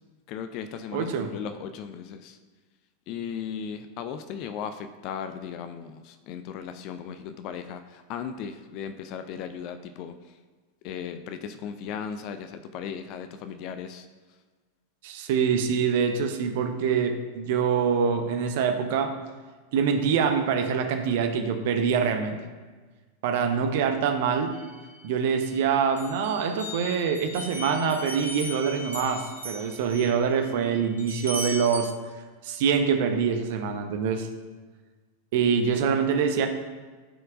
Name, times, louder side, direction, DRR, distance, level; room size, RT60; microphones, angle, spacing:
voice 1, 0.3-2.4 3.1-10.1 10.8-14.1, left 7 dB, 40° left, 8 dB, 0.4 m, -36 dB
voice 2, 0.9-1.3 15.0-19.1 19.7-22.4 23.2-24.5 25.0-31.9 32.4-34.3 35.3-36.5, right 6 dB, 50° right, 6 dB, 0.8 m, -25 dB
sound 1, 24.5-25.5 26.0-31.8, equal, 75° right, 1.2 m, -38 dB
13.0 x 4.5 x 2.5 m, 1.4 s
figure-of-eight pair, 90°, 0 cm